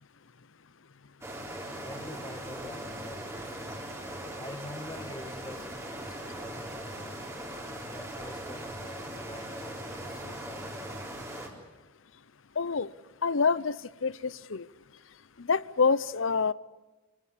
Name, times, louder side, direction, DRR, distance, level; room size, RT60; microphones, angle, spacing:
sound 1, 1.2-11.5, right 1 dB, 15° right, 3.8 m, -40 dB
voice 1, 1.8-3.9 4.2-7.2 7.7-11.0, left 1 dB, 20° left, 1.6 m, -46 dB
voice 2, 12.6-12.9 13.2-14.7 15.4-16.5, left 5 dB, 70° left, 0.7 m, -27 dB
26.5 x 16.5 x 10.0 m
head